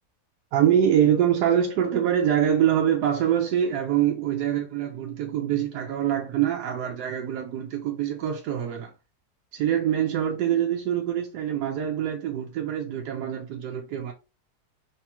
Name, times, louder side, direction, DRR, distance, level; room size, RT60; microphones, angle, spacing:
voice 1, 0.5-8.9 9.5-14.1, right 10 dB, 90° right, 1.2 m, -24 dB
4.3 x 3.3 x 2.3 m
omnidirectional pair, 1.7 m